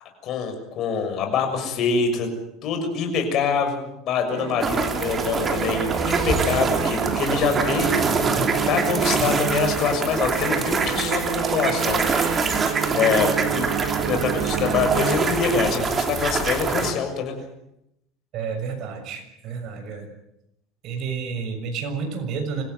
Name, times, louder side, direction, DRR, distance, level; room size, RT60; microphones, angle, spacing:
voice 1, 0.2-2.3 2.6-8.0 8.7-12.6 12.9-13.7 14.0-17.4, left 6 dB, 45° left, 5 dB, 6.6 m, -25 dB
sound 1, 4.3-15.8, right 10 dB, 65° right, 2.7 m, -29 dB
sound 2, 4.6-16.9, right 4 dB, 25° right, 3.2 m, -25 dB
voice 2, 18.3-20.1 20.8-22.6, right 5 dB, 50° right, 5 dB, 6.6 m, -30 dB
26.5 x 16.0 x 9.5 m, 0.83 s
cardioid pair, 145°, 0 cm